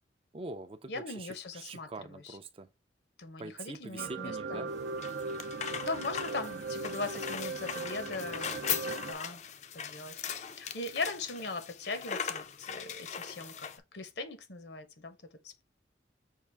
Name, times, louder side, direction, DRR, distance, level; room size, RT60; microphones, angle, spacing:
voice 1, 0.3-1.3 1.5-2.7 3.4-4.7 8.9-9.1, right 3 dB, 30° right, 0.4 m, -43 dB
voice 2, 0.9-2.4 3.2-4.7 5.8-9.4 9.7-10.2 10.5-15.2 15.4-15.6, left 3 dB, 70° left, 0.8 m, -40 dB
sound 1, 4.0-9.1, right 3 dB, 80° right, 0.6 m, -38 dB
sound 2, 4.7-13.8, left 8 dB, 40° left, 0.4 m, -39 dB
5.6 x 2.5 x 3.4 m
head